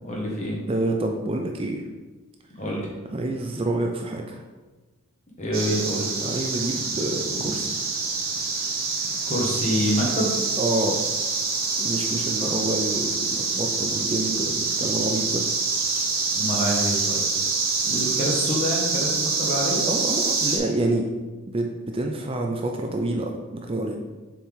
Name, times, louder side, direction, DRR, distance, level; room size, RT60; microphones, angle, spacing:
voice 1, 0.0-0.6 2.5-2.9 5.4-6.1 9.2-10.3 16.3-17.2 17.9-19.8, equal, 35° left, -3 dB, 1.6 m, -26 dB
voice 2, 0.7-1.8 3.1-4.4 6.2-7.7 10.6-11.0 11.8-15.4 19.9-21.1 21.5-24.0, right 2 dB, 25° right, 2 dB, 0.5 m, -27 dB
sound 1, 5.5-20.6, right 4 dB, 45° right, 1.2 m, -26 dB
7.2 x 4.5 x 3.6 m, 1.2 s
head